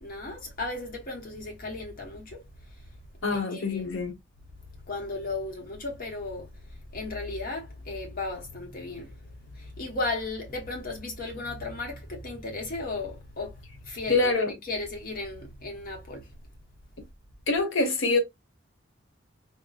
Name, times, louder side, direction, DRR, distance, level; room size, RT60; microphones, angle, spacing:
voice 1, 0.0-3.0 3.3-4.1 4.8-16.3, left 2 dB, 50° left, 0.9 m, -36 dB
voice 2, 3.2-4.2 14.1-14.5 17.5-18.2, left 3 dB, 80° left, 1.1 m, -25 dB
3.9 x 2.0 x 2.3 m
head